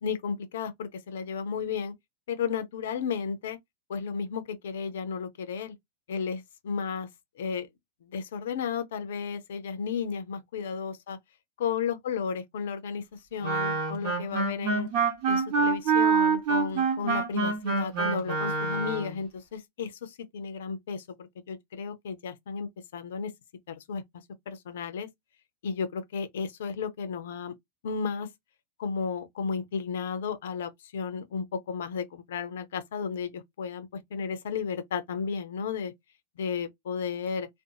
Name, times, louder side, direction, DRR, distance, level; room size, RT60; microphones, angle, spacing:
voice 1, 0.0-1.9 2.3-3.6 3.9-5.8 6.1-7.1 7.4-7.7 8.0-11.2 11.6-13.0 13.3-14.9 15.3-23.3 23.7-24.0 24.5-25.1 25.6-27.5 27.8-28.3 28.8-35.9 36.4-37.5, left 6 dB, 60° left, 0.5 m, -33 dB
Wind instrument woodwind instrument, 13.4-19.2, right 5 dB, 45° right, 1.0 m, -26 dB
2.4 x 2.2 x 2.7 m
figure-of-eight pair, 90°, 0 cm